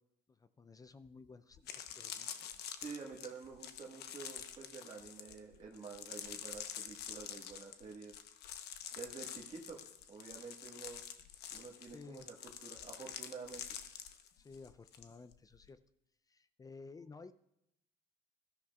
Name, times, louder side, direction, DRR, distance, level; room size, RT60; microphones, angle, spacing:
voice 1, 0.3-2.3 11.9-12.3 14.4-15.8 16.3-17.3, left 4 dB, 20° left, 13 dB, 0.4 m, -54 dB
sound 1, 1.1-1.2 1.5-15.1 15.3-15.7, left 9 dB, 75° left, 0.9 m, -47 dB
voice 2, 2.7-8.2 8.9-9.8 10.1-11.0 11.5-12.3 12.6-13.7, right 5 dB, 35° right, -3 dB, 1.6 m, -49 dB
20.5 x 13.0 x 2.4 m, 0.78 s
cardioid pair, 110°, 17 cm